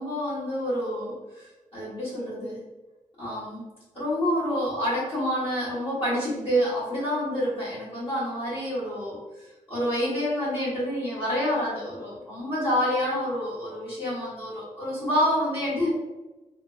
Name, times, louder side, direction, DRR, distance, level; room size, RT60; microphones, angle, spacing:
voice 1, 0.0-1.5 1.7-2.6 3.2-3.6 3.9-9.2 9.4-15.9, equal, 45° left, -10 dB, 1.4 m, -28 dB
3.1 x 2.2 x 2.5 m, 1.1 s
wide cardioid pair, 120°, 13 cm